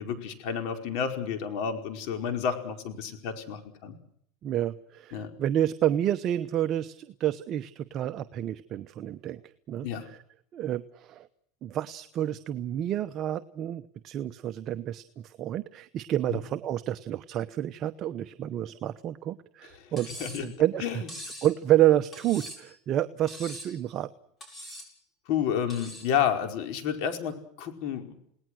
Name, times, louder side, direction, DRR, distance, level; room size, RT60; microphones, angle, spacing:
voice 1, 0.0-4.0 5.1-5.3 9.8-10.1 16.3-16.4 19.8-19.9 20.2-20.5 20.8-21.1 25.3-28.1, left 8 dB, 55° left, 6 dB, 4.8 m, -30 dB
voice 2, 4.4-9.4 9.7-10.2 10.5-11.3 11.6-20.1 20.4-21.0 21.4-24.1, right 12 dB, 35° right, 10 dB, 0.9 m, -29 dB
Cutlery silverware, 20.0-20.5 21.1-21.5 22.1-22.7 23.3-23.8 24.4-24.9 25.7-26.1, equal, 15° left, 7.3 m, -42 dB
29.5 x 19.0 x 6.3 m, 0.70 s
supercardioid pair, 140°, 0 cm